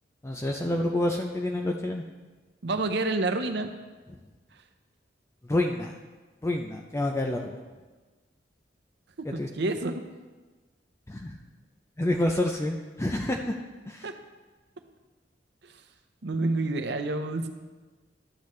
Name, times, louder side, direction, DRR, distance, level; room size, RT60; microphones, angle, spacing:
voice 1, 0.2-2.0 5.5-5.9 6.4-7.6 9.4-9.5 11.1-11.4 12.0-13.5 13.9-14.0, left 1 dB, 15° left, 1 dB, 0.5 m, -28 dB
voice 2, 2.6-3.7 9.3-10.0 14.0-14.1 16.2-17.5, right 2 dB, 65° right, 8 dB, 0.7 m, -28 dB
12.0 x 8.4 x 3.2 m, 1.3 s
head